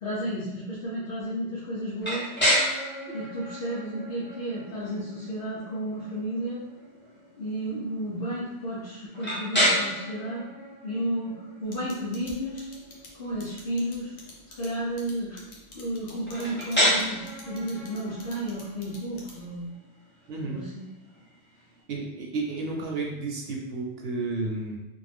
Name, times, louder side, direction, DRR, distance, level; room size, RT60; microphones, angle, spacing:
voice 1, 0.0-2.3 3.1-6.6 7.4-10.4 10.8-12.7 13.1-14.1 14.6-15.4 15.7-19.7 20.4-20.9, right 1 dB, 60° left, -8 dB, 0.8 m, -32 dB
sound 1, 2.0-21.8, equal, 10° left, 0.9 m, -32 dB
sound 2, 11.7-19.6, left 3 dB, 85° left, 1.0 m, -48 dB
voice 2, 20.3-20.6 21.9-24.8, right 3 dB, 65° right, -1 dB, 0.7 m, -32 dB
2.6 x 2.1 x 3.3 m, 0.97 s
omnidirectional pair, 1.1 m